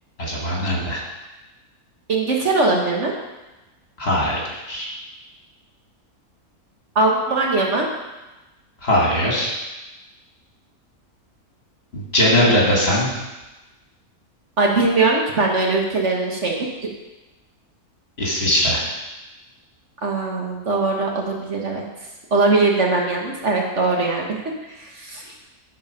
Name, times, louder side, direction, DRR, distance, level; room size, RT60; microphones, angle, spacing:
voice 1, 0.2-1.0 4.0-4.4 4.7-4.9 8.8-9.5 11.9-13.2 18.2-18.8, left 1 dB, 40° left, -4 dB, 2.6 m, -20 dB
voice 2, 2.1-3.1 6.9-7.9 12.2-12.7 14.6-16.7 20.0-21.8 22.3-25.3, right 3 dB, 50° right, -1 dB, 1.6 m, -21 dB
14.0 x 4.7 x 5.2 m, 1.1 s
omnidirectional pair, 1.6 m